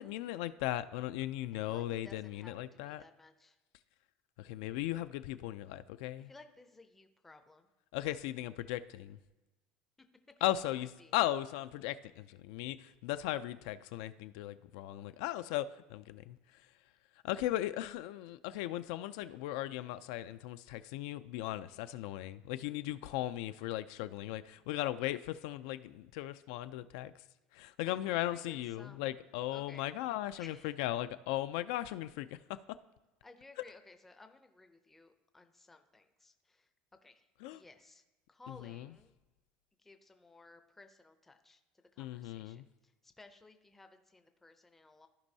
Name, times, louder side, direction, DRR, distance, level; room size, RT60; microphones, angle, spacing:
voice 1, 0.0-3.0 4.4-6.3 7.9-9.2 10.4-16.7 17.2-27.1 27.5-32.4 37.4-37.6 38.5-38.9 42.0-42.6, left 14 dB, 75° left, 13 dB, 0.3 m, -37 dB
voice 2, 1.6-3.6 6.2-7.7 10.3-10.4 10.8-11.1 27.8-29.2 29.5-29.9 30.4-30.7 33.2-36.7 37.0-39.1 39.8-41.6 41.9-45.1, left 3 dB, 5° left, 7 dB, 0.5 m, -58 dB
14.5 x 5.3 x 2.7 m, 1.1 s
cardioid pair, 180°, 3 cm